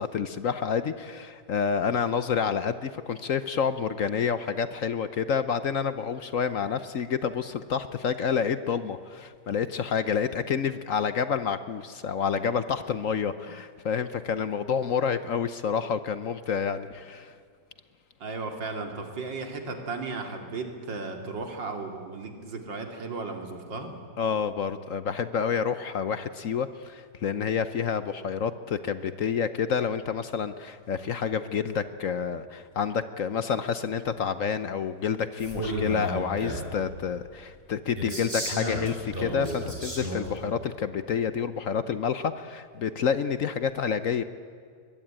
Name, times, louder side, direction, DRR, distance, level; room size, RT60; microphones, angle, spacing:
voice 1, 0.0-17.3 24.2-44.2, left 7 dB, 55° left, 12 dB, 1.0 m, -28 dB
voice 2, 18.2-24.0, right 3 dB, 90° right, 4 dB, 3.2 m, -35 dB
Male speech man speaking, 35.4-36.7 38.0-40.4, right 1 dB, 30° right, 5.6 m, -32 dB
22.5 x 21.5 x 8.8 m, 2.2 s
omnidirectional pair, 1.9 m